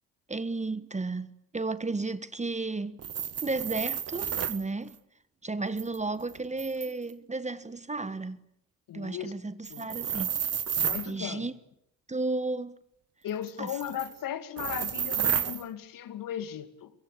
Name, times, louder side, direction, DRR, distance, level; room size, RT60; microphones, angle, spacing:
voice 1, 0.3-3.0 3.4-5.0 5.4-8.4 8.9-10.3 11.1-11.5 12.1-12.7 13.6-13.8, right 3 dB, 15° right, 1.4 m, -33 dB
sound 1, 3.0-4.6 5.8-7.1 9.7-11.1 13.5-14.1 14.6-15.6, right 8 dB, 40° right, 1.3 m, -31 dB
voice 2, 8.9-9.3 9.7-9.9 10.8-11.5 13.2-16.9, left 10 dB, 55° left, 2.3 m, -37 dB
26.5 x 24.0 x 8.4 m
figure-of-eight pair, 45°, 39 cm